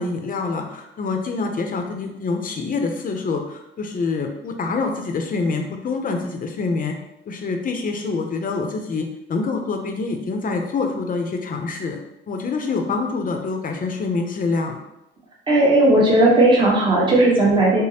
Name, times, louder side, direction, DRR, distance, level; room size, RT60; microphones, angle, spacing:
voice 1, 0.0-6.9 7.3-12.0 12.3-14.8, left 4 dB, 45° left, 4 dB, 0.6 m, -26 dB
voice 2, 15.5-17.8, right 1 dB, 25° right, -5 dB, 1.0 m, -15 dB
5.0 x 2.0 x 2.8 m, 0.88 s
cardioid pair, 90°, 20 cm